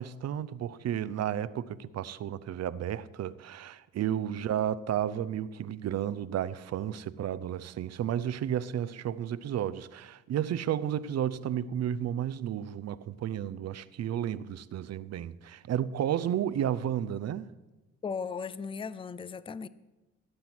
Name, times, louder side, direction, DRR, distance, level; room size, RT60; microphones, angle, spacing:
voice 1, 0.0-17.5, right 10 dB, 60° right, 0.6 m, -32 dB
voice 2, 18.0-19.7, left 5 dB, 20° left, 0.5 m, -36 dB
16.0 x 7.7 x 6.1 m
cardioid pair, 90°, 30 cm